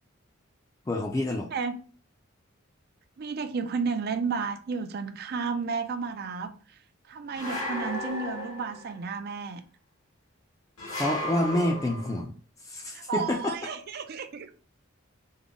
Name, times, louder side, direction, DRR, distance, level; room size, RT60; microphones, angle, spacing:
voice 1, 0.9-1.5 11.0-12.3 12.7-13.5, left 1 dB, 15° left, 0.4 m, -28 dB
voice 2, 1.5-1.9 3.2-6.5 7.1-9.6 12.9-14.5, right 5 dB, 50° right, 0.4 m, -32 dB
sound 1, 7.4-9.0 10.8-12.2, equal, 80° left, 1.3 m, -34 dB
3.6 x 2.0 x 3.7 m
head